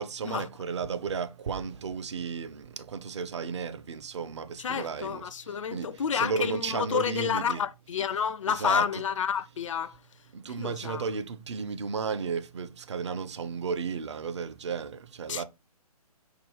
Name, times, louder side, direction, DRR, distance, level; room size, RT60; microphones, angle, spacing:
voice 1, 0.0-7.6 8.5-9.0 10.3-15.4, right 5 dB, 50° right, 0.6 m, -34 dB
voice 2, 4.6-10.0 10.6-11.0 15.3-15.4, left 7 dB, 55° left, 0.4 m, -30 dB
4.8 x 2.3 x 4.7 m
figure-of-eight pair, 135°, 20 cm